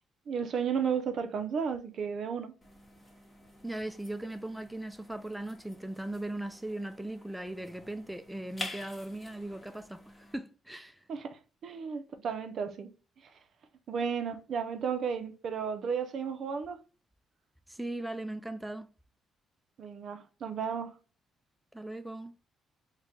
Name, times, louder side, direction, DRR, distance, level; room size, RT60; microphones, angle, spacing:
voice 1, 0.3-2.5 11.1-12.9 13.2-13.3 13.9-16.8 19.8-20.9, right 6 dB, 60° right, 0.5 m, -33 dB
sound 1, 2.6-10.4, left 2 dB, 20° left, 1.0 m, -48 dB
voice 2, 3.6-11.0 17.7-18.9 21.7-22.3, right 1 dB, 5° right, 0.3 m, -38 dB
3.1 x 2.2 x 3.9 m
cardioid pair, 90°, 0 cm